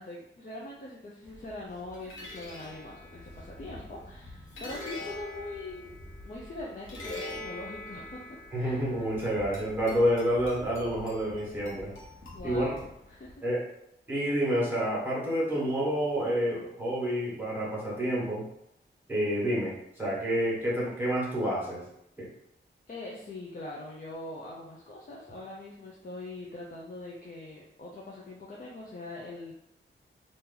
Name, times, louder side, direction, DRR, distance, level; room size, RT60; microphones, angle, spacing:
voice 1, 0.0-5.9 6.2-8.8 12.3-12.8 13.1-13.4 22.9-29.5, left 2 dB, 45° left, -4 dB, 0.5 m, -42 dB
sound 1, 1.2-13.3, left 1 dB, 80° left, 1.0 m, -44 dB
voice 2, 8.5-11.9 12.4-12.7 13.4-13.6 14.1-18.4 19.1-21.8 22.2-22.3, equal, 10° right, -7 dB, 1.3 m, -29 dB
2.9 x 2.6 x 3.8 m, 0.78 s
wide cardioid pair, 135°, 20 cm